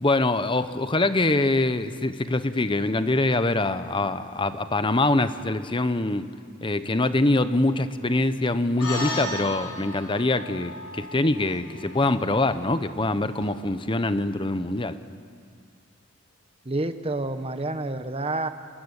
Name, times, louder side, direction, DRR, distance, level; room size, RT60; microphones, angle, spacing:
voice 1, 0.0-6.3 6.6-15.0, left 2 dB, 25° left, 11 dB, 0.9 m, -24 dB
sound 1, 8.8-13.5, left 2 dB, 80° left, 7.7 m, -36 dB
voice 2, 16.6-18.5, right 2 dB, 30° right, 9 dB, 1.2 m, -28 dB
27.0 x 19.0 x 10.0 m, 2.1 s
head